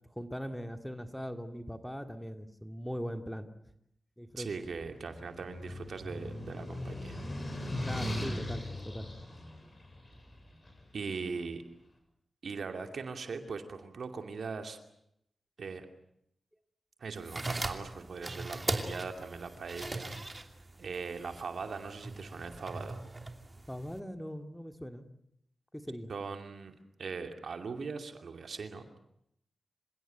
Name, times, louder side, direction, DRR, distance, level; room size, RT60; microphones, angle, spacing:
voice 1, 0.1-3.5 4.2-4.5 7.9-9.1 23.7-25.0 25.7-26.1, equal, 5° left, 7 dB, 2.2 m, -40 dB
voice 2, 4.4-7.2 10.9-11.6 12.4-14.8 15.6-15.9 17.0-20.1 20.8-23.0 26.1-28.8, right 4 dB, 75° right, 6 dB, 2.6 m, -40 dB
sound 1, 4.6-10.8, left 1 dB, 35° left, 7.8 m, -39 dB
sound 2, 17.2-24.0, right 2 dB, 30° right, 2.9 m, -40 dB
27.5 x 16.5 x 9.2 m, 0.79 s
cardioid pair, 55°, 0 cm